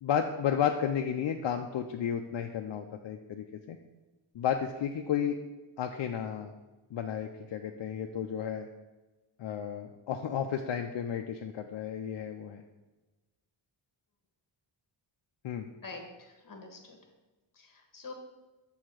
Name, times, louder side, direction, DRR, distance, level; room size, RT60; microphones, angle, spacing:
voice 1, 0.0-3.8 4.3-5.4 5.8-6.5 6.9-8.7 9.4-12.6 15.4-15.7, left 8 dB, 65° left, 4 dB, 0.5 m, -32 dB
voice 2, 15.8-17.0 17.5-18.1, left 3 dB, 40° left, 3 dB, 1.3 m, -46 dB
6.4 x 3.5 x 6.2 m, 1.1 s
wide cardioid pair, 125°, 48 cm